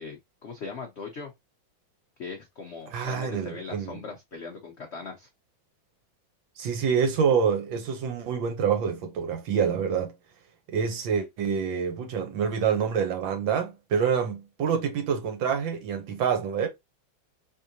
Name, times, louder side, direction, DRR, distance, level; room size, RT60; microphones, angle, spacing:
voice 1, 0.0-1.3 2.2-5.3, left 4 dB, 70° left, 0.6 m, -39 dB
voice 2, 2.9-4.0 6.6-10.1 10.7-16.7, right 7 dB, 75° right, 1.5 m, -26 dB
3.7 x 3.3 x 2.6 m
omnidirectional pair, 2.2 m